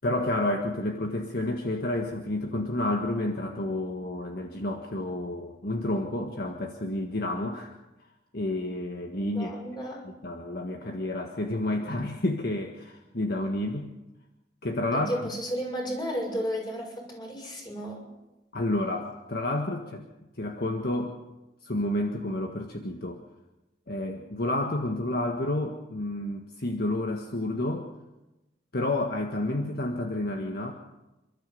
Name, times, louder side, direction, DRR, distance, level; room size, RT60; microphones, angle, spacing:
voice 1, 0.0-7.7 8.3-9.5 10.0-13.9 14.6-15.3 18.5-20.0 20.4-21.2 21.6-23.2 23.9-27.9 28.7-30.7, left 1 dB, 60° left, 3 dB, 1.6 m, -30 dB
voice 2, 9.4-10.0 14.9-18.1, equal, 25° left, 0 dB, 7.1 m, -33 dB
28.5 x 13.0 x 7.1 m, 1.0 s
head